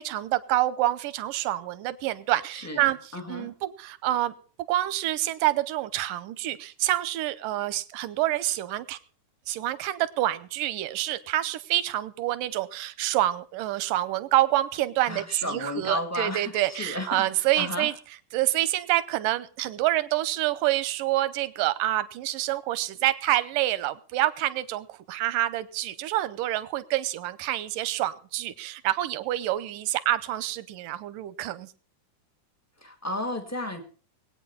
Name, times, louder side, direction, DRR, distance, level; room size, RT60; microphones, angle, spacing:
voice 1, 0.0-3.0 3.3-4.3 4.7-9.0 9.5-17.9 18.3-31.7, right 15 dB, 85° right, 16 dB, 2.4 m, -27 dB
voice 2, 2.5-3.5 15.1-17.9 32.8-33.8, left 1 dB, 20° left, 5 dB, 0.4 m, -33 dB
21.5 x 8.9 x 5.5 m, 0.41 s
omnidirectional pair, 3.7 m